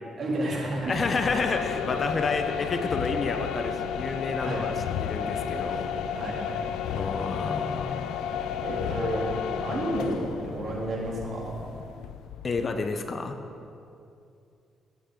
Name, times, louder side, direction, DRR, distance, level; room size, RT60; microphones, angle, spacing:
voice 1, 0.2-1.0 1.7-2.0 2.5-2.6 4.4-4.7 6.2-6.5 7.8-7.9 8.6-9.3 9.6-11.5, right 1 dB, 50° right, -4 dB, 3.2 m, -31 dB
sound 1, 0.8-12.7, left 8 dB, 90° left, 0.4 m, -32 dB
voice 2, 0.8-4.7 5.0-5.9 6.9-8.3 12.4-13.4, left 4 dB, 40° left, 6 dB, 0.8 m, -30 dB
15.0 x 8.9 x 3.9 m, 2.6 s
cardioid pair, 90°, 0 cm